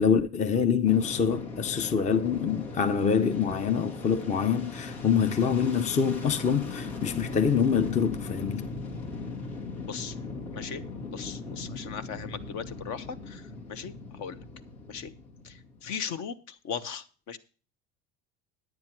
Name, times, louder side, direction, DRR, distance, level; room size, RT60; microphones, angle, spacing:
voice 1, 0.0-8.7, left 7 dB, 20° left, 0.6 m, -25 dB
Fixed-wing aircraft airplane, 0.9-16.0, left 3 dB, 90° left, 2.7 m, -39 dB
voice 2, 11.1-14.4 14.9-15.1 15.4-17.4, left 7 dB, 55° left, 1.2 m, -38 dB
9.7 x 9.4 x 4.5 m
supercardioid pair, 115°, 32 cm